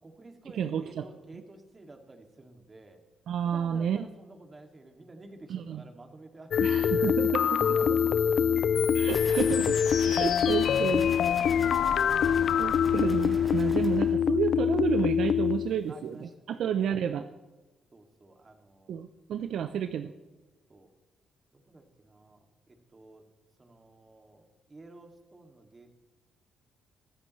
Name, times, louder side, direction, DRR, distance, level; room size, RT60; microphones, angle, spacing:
voice 1, 0.0-3.0 3.4-8.5 8.7-8.9 10.5-10.8 15.9-16.8 17.9-19.0 19.3-19.8 20.7-20.9 21.5-23.2 23.6-25.9, right 2 dB, 25° right, 4 dB, 2.4 m, -52 dB
voice 2, 0.6-1.0 3.3-4.0 5.5-5.8 6.6-7.7 8.9-11.1 12.6-17.3 18.9-20.1, right 8 dB, 70° right, 9 dB, 0.6 m, -31 dB
sound 1, 6.5-15.8, left 8 dB, 65° left, 0.4 m, -25 dB
sound 2, 9.1-14.2, equal, ahead, 2.4 m, -41 dB
23.5 x 14.0 x 3.2 m, 1.2 s
cardioid pair, 90°, 0 cm